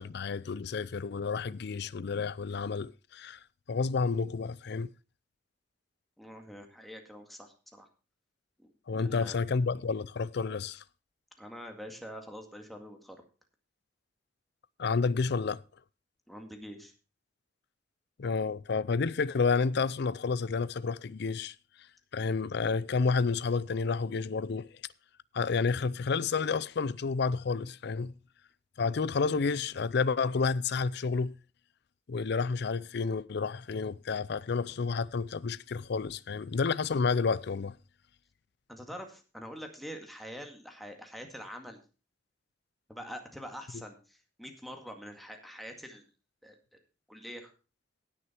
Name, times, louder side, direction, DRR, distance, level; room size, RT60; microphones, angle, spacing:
voice 1, 0.0-3.4 3.7-4.9 8.9-10.8 14.8-15.6 18.2-21.5 22.1-24.7 25.3-28.1 28.8-31.3 32.1-37.8, left 4 dB, 65° left, 0.5 m, -30 dB
voice 2, 6.2-7.9 8.6-9.4 11.4-13.2 16.3-16.9 38.7-41.8 42.9-46.0 46.4-46.6 47.1-47.5, equal, ahead, 2.0 m, -45 dB
17.0 x 6.5 x 4.4 m
head